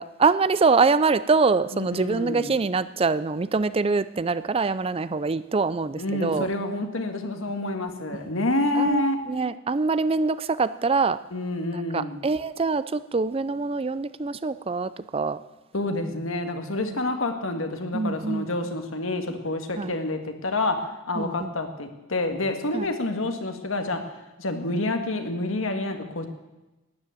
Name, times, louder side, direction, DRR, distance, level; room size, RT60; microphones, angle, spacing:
voice 1, 0.0-6.5 8.8-11.2 11.7-15.4 16.8-16.9 17.9-18.5 19.8-19.9 21.2-21.5 22.7-22.8, right 4 dB, 30° right, 15 dB, 0.4 m, -24 dB
voice 2, 1.7-2.5 6.0-9.2 11.3-12.2 15.7-24.0 24.4-26.3, left 2 dB, 80° left, 6 dB, 1.8 m, -28 dB
12.5 x 9.6 x 9.1 m, 1.1 s
head